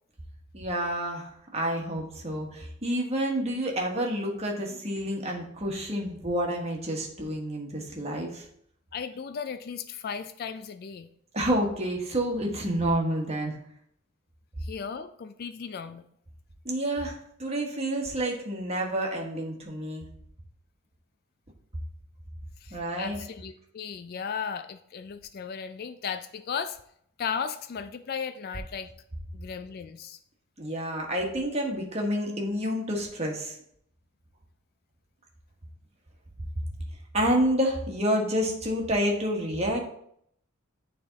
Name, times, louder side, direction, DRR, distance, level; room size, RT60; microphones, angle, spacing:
voice 1, 0.5-8.5 11.3-13.6 16.6-20.0 22.7-23.2 30.6-33.6 37.1-39.8, right 1 dB, 30° right, 0 dB, 1.3 m, -29 dB
voice 2, 8.9-11.1 14.6-16.0 22.6-26.8 27.2-28.9 29.3-30.2, left 6 dB, 45° left, 11 dB, 0.3 m, -36 dB
9.5 x 3.4 x 3.9 m, 0.69 s
head